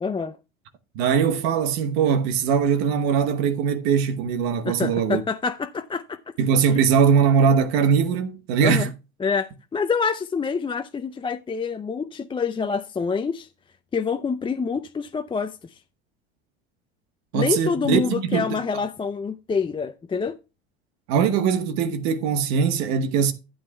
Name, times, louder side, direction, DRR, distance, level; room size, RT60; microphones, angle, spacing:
voice 1, 0.0-0.4 4.6-6.2 6.7-6.8 8.6-8.9 9.2-13.5 13.9-15.8 17.3-20.4, left 5 dB, 15° left, 0.5 m, -26 dB
voice 2, 0.9-5.2 6.4-8.9 17.3-18.6 21.1-23.3, right 7 dB, 75° right, 1.1 m, -21 dB
12.0 x 8.8 x 2.3 m
hypercardioid pair, 85°, 32 cm